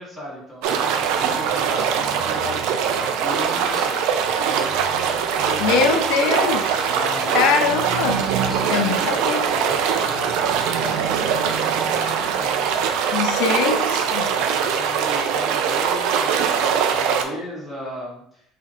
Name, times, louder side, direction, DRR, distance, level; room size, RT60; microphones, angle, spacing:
voice 1, 0.0-5.9 6.9-7.5 8.1-12.9 14.1-18.4, left 1 dB, ahead, -7 dB, 1.5 m, -36 dB
sound 1, 0.6-17.2, right 7 dB, 75° right, 0.5 m, -22 dB
voice 2, 5.6-6.8 7.3-8.2 8.7-9.4 13.1-14.2, left 5 dB, 85° left, 5 dB, 0.5 m, -22 dB
4.1 x 2.7 x 4.3 m, 0.72 s
cardioid pair, 165°, 0 cm